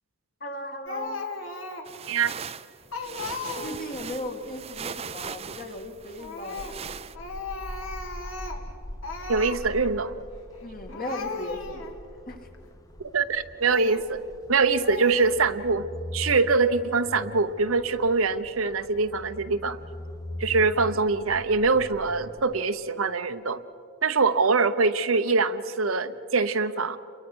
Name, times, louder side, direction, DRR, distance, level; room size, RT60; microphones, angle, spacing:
voice 1, 0.4-1.2 3.6-6.8 10.6-11.8 12.3-12.5, left 1 dB, 45° left, 4 dB, 2.1 m, -36 dB
Speech, 0.9-2.0 2.4-2.5 2.9-4.0 6.2-6.8 7.2-8.7 9.0-9.6 10.5-10.6 10.9-12.0 12.5-12.7 13.6-14.1 14.8-15.3, left 3 dB, 70° left, 2.1 m, -36 dB
sound 1, 1.8-7.2, right 7 dB, 30° right, 0.5 m, -39 dB
sound 2, 2.8-22.6, left 1 dB, 15° left, 0.7 m, -42 dB
voice 2, 9.3-10.2 13.0-14.2 14.5-15.9 16.1-19.8 20.4-23.6 24.0-27.0, right 4 dB, 85° right, 10 dB, 0.9 m, -24 dB
29.0 x 22.5 x 6.3 m, 2.5 s
head